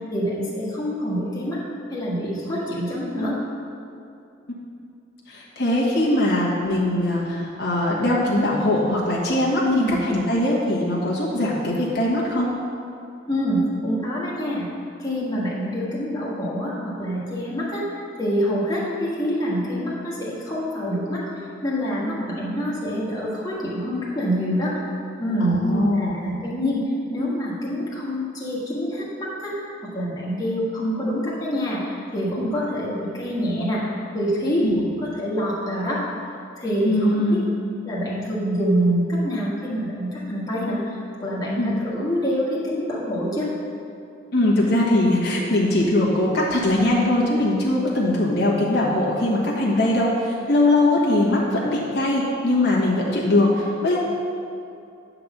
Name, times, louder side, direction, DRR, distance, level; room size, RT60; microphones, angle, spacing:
voice 1, 0.1-1.6 1.9-3.4 9.6-10.0 13.3-14.7 15.0-17.9 18.1-21.2 21.6-24.8 25.2-26.8 27.1-29.7 29.9-34.7 35.0-36.0 36.6-37.4 37.8-43.5, equal, 20° left, -7 dB, 1.6 m, -26 dB
voice 2, 5.3-12.5 25.4-26.2 32.4-32.5 34.6-34.8 36.8-37.4 41.6-41.7 44.3-54.0, left 1 dB, 55° left, -5 dB, 1.3 m, -21 dB
9.7 x 4.0 x 7.2 m, 2.5 s
head